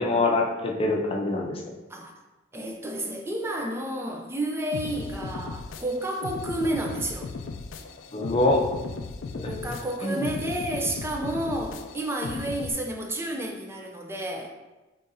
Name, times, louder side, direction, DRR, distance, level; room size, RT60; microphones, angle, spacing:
voice 1, 0.0-1.6 8.1-8.7 9.3-9.5 10.0-10.3, left 2 dB, 30° left, 1 dB, 0.6 m, -24 dB
voice 2, 2.5-7.3 9.5-14.5, right 1 dB, 15° right, 2 dB, 0.4 m, -31 dB
sound 1, 4.7-12.7, left 4 dB, 80° left, 0.4 m, -37 dB
5.4 x 3.7 x 2.6 m, 1.1 s
head